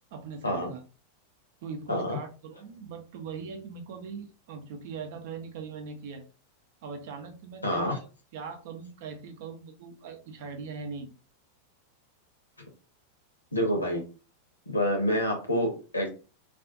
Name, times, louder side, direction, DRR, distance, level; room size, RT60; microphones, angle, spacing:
voice 1, 0.1-0.8 1.6-6.2 6.8-8.0 8.3-11.1, right 5 dB, 50° right, 0.5 m, -40 dB
voice 2, 7.6-7.9 13.5-14.0 14.7-16.1, equal, 80° left, 0.7 m, -27 dB
2.5 x 2.3 x 2.4 m
figure-of-eight pair, 90°, 0 cm